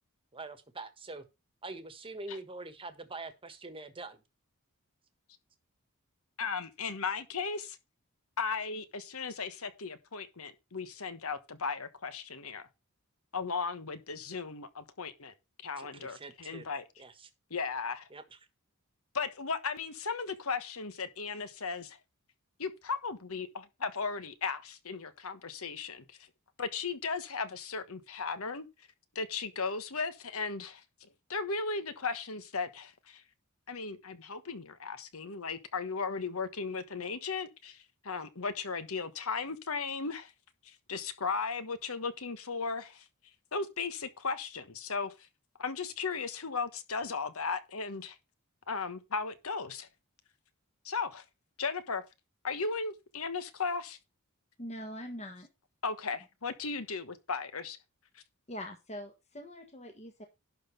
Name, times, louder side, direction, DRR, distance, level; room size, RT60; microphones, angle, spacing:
voice 1, 0.3-1.2 1.6-4.2 15.8-16.7 17.0-17.3 18.1-18.2, right 2 dB, 25° right, 1.4 m, -44 dB
voice 2, 6.4-7.8 8.4-12.7 13.3-15.3 15.6-16.8 17.5-18.1 19.1-22.0 22.6-26.2 26.6-28.7 29.1-33.2 33.7-40.3 40.6-43.0 43.5-45.1 45.6-48.2 48.7-49.9 50.8-51.2 51.6-52.0 52.4-54.0 55.8-57.8 58.1-58.2, left 4 dB, 70° left, 1.3 m, -36 dB
voice 3, 54.6-55.5 58.5-60.2, equal, 30° left, 1.4 m, -43 dB
11.5 x 4.0 x 6.8 m
head